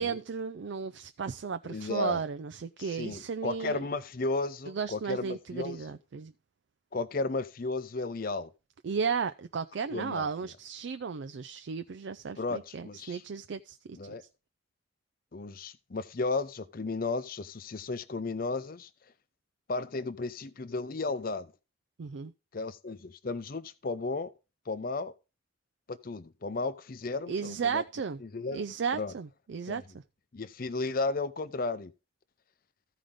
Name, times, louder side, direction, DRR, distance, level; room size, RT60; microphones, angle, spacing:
voice 1, 0.0-3.8 4.7-6.3 8.8-14.1 22.0-22.3 27.3-28.2 28.5-30.0, right 6 dB, 70° right, 0.4 m, -34 dB
voice 2, 1.7-2.2 2.8-5.8 6.9-8.5 9.9-10.3 12.4-13.2 13.9-14.2 15.3-18.9 19.7-21.5 22.5-24.3 24.7-25.1 25.9-27.8 28.2-28.7 28.9-29.1 29.7-29.8 30.3-31.9, left 3 dB, 45° left, 0.6 m, -34 dB
14.5 x 5.0 x 3.7 m
head